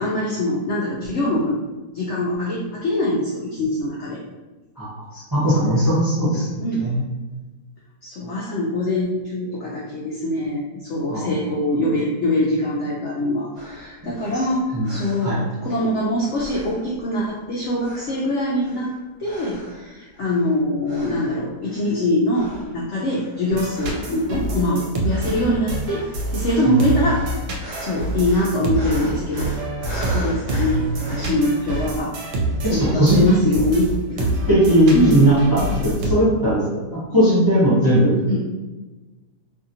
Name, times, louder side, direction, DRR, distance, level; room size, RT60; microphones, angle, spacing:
voice 1, 0.0-1.6 1.9-4.2 6.6-6.9 8.0-15.4 15.6-18.9 19.2-22.5 22.7-26.0 26.3-27.2 27.5-29.5 29.9-32.1 32.7-34.4 34.9-35.3 38.3-38.4, left 1 dB, 75° left, -5 dB, 0.6 m, -23 dB
voice 2, 5.1-6.5 6.8-7.0 11.1-11.3 14.7-15.0 15.2-15.4 26.7-26.8 30.5-31.1 32.6-33.3 34.5-38.2, right 1 dB, 35° right, -9 dB, 0.3 m, -18 dB
sound 1, 13.5-16.0 16.3-17.5 17.8-19.9 20.1-20.5 20.8-22.0 22.3-32.0, equal, 55° right, 1.3 m, -39 dB
sound 2, 23.5-36.1, right 2 dB, 80° right, 1.1 m, -26 dB
2.7 x 2.7 x 2.5 m, 1.2 s
omnidirectional pair, 1.7 m